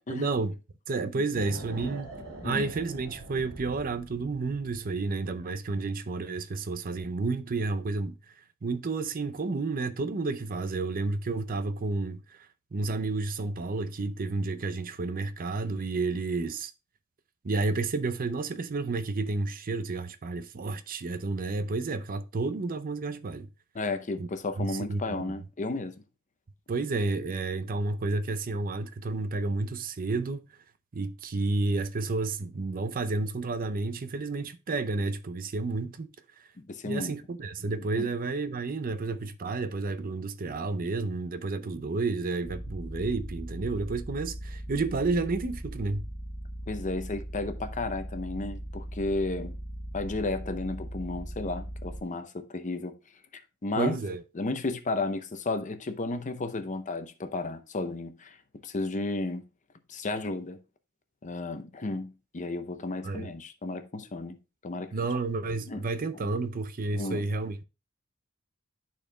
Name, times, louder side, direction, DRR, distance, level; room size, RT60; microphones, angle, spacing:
voice 1, 0.1-0.6 0.9-2.1 2.4-8.1 8.6-12.2 12.7-16.7 17.4-23.5 24.2-24.3 24.6-25.2 26.7-30.5 30.9-36.1 36.8-46.0 53.8-54.2 63.0-63.3 64.9-67.6, right 3 dB, 45° right, 0.5 m, -31 dB
sound 1, 1.3-5.0, equal, 75° right, 2.5 m, -43 dB
voice 2, 23.7-25.9 36.6-37.1 37.9-38.1 46.7-49.5 49.9-53.0 53.6-54.0 54.3-58.4 58.6-59.4 59.9-60.6 61.2-64.4 64.6-64.9 65.7-65.8 66.9-67.2, left 2 dB, 35° left, 0.7 m, -33 dB
sound 2, 42.4-52.0, equal, 20° left, 1.2 m, -39 dB
13.0 x 4.3 x 2.3 m
head